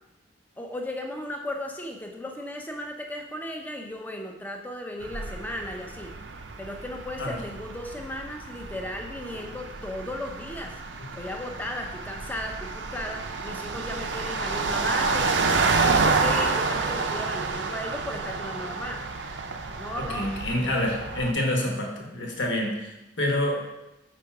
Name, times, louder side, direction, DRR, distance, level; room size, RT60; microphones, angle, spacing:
voice 1, 0.6-6.1 6.6-10.8 11.1-15.5 15.8-19.0 19.8-20.3, left 1 dB, 10° left, 2 dB, 0.5 m, -36 dB
sound 1, 5.0-21.3, right 4 dB, 75° right, 0.6 m, -29 dB
voice 2, 19.9-23.6, left 1 dB, 75° left, 1 dB, 1.2 m, -28 dB
5.1 x 3.6 x 5.8 m, 0.99 s
head